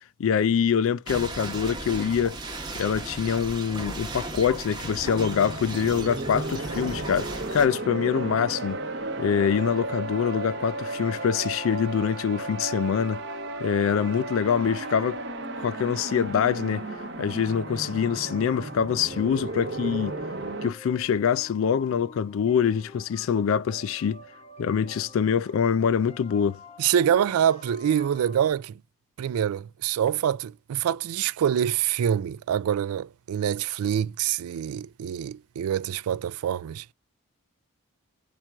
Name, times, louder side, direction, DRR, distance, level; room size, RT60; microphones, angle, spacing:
voice 1, 0.2-2.4 2.7-8.8 9.2-13.2 13.6-15.2 15.6-16.8 17.2-20.1 20.6-24.2 24.6-26.6, left 7 dB, 65° left, 0.3 m, -25 dB
sound 1, 1.1-7.7, right 2 dB, 20° right, 1.0 m, -36 dB
sound 2, 5.0-20.7, right 2 dB, 50° right, 0.8 m, -34 dB
sound 3, 9.0-28.5, left 2 dB, 25° left, 0.8 m, -47 dB
voice 2, 26.8-28.7 29.2-36.9, right 9 dB, 80° right, 0.3 m, -25 dB
4.4 x 2.4 x 4.5 m
head